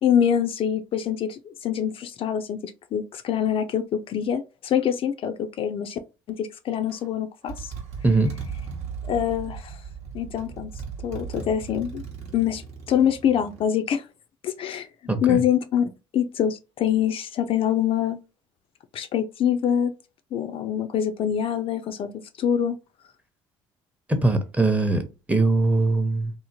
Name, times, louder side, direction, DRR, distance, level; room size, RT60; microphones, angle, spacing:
voice 1, 0.0-6.0 6.3-7.7 9.1-9.8 10.1-10.7 11.0-12.0 12.3-12.6 12.9-14.1 14.4-14.9 15.2-18.2 18.9-19.9 20.3-22.8, left 9 dB, 50° left, 0.4 m, -25 dB
Motorcycle, 6.9-7.1 7.5-13.6, right 6 dB, 65° right, 0.9 m, -37 dB
voice 2, 15.1-15.4 24.1-25.0 25.3-26.3, right 2 dB, 10° right, 0.7 m, -21 dB
2.8 x 2.0 x 2.7 m
hypercardioid pair, 65°, 12 cm